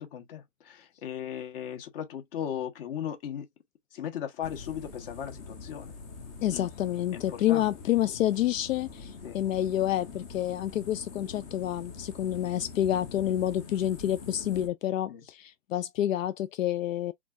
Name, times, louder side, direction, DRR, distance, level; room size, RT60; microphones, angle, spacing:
voice 1, 0.0-3.5 3.9-5.9 6.5-6.7 7.1-7.7 9.2-9.4 15.1-15.2, left 9 dB, 45° left, 1.4 m, -37 dB
sound 1, 4.4-14.7, left 4 dB, 15° left, 0.4 m, -45 dB
voice 2, 6.4-17.1, left 12 dB, 80° left, 0.5 m, -28 dB
4.2 x 3.7 x 2.5 m
hypercardioid pair, 150°, 39 cm